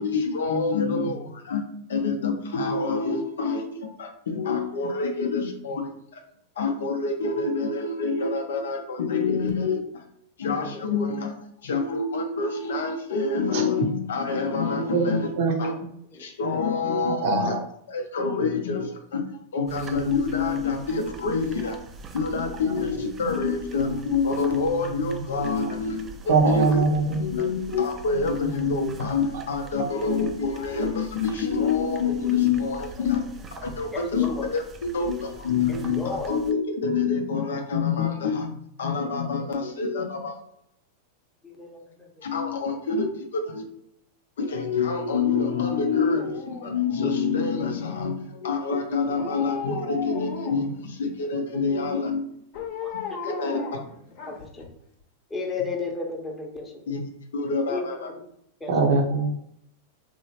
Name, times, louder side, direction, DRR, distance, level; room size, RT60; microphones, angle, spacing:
voice 1, 0.0-1.6 1.9-6.2 6.6-10.0 10.4-11.3 11.6-15.3 15.6-15.7 16.2-17.6 17.9-19.2 19.5-21.8 22.1-26.8 27.1-33.2 33.6-34.6 34.9-40.4 42.2-43.7 44.4-52.2 52.9-53.6 56.9-57.0 57.3-58.1, left 4 dB, 80° left, 4 dB, 0.6 m, -26 dB
voice 2, 17.1-17.6 22.7-22.8 26.3-27.2 28.4-28.5 29.3-29.4 29.8-29.9 58.7-59.3, right 4 dB, 65° right, 3 dB, 0.6 m, -22 dB
sound 1, 19.7-36.5, right 3 dB, 25° right, 0.3 m, -44 dB
voice 3, 33.9-34.5 35.7-36.3 41.4-42.1 52.7-53.7 54.3-54.7 55.3-56.7 57.7-58.2 58.6-58.7, left 4 dB, 15° left, 0 dB, 0.8 m, -34 dB
Dog, 45.4-47.4 49.1-50.8 52.5-54.6 55.0-55.1, left 4 dB, 55° left, 0.8 m, -36 dB
3.0 x 2.0 x 2.8 m, 0.72 s
hypercardioid pair, 110°, 0 cm